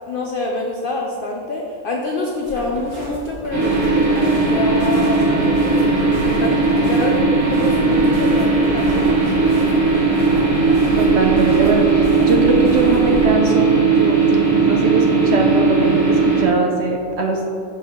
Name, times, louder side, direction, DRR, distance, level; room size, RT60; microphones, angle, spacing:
voice 1, 0.0-7.2 7.5-9.5, left 2 dB, 75° left, 0 dB, 0.5 m, -26 dB
sound 1, 2.4-13.3, right 1 dB, 40° right, 1.6 m, -32 dB
sound 2, 3.5-16.5, right 4 dB, 15° right, 1.0 m, -17 dB
voice 2, 11.0-14.2 14.4-17.5, right 3 dB, 65° right, 1 dB, 0.7 m, -21 dB
6.0 x 5.5 x 3.0 m, 2.6 s
omnidirectional pair, 1.5 m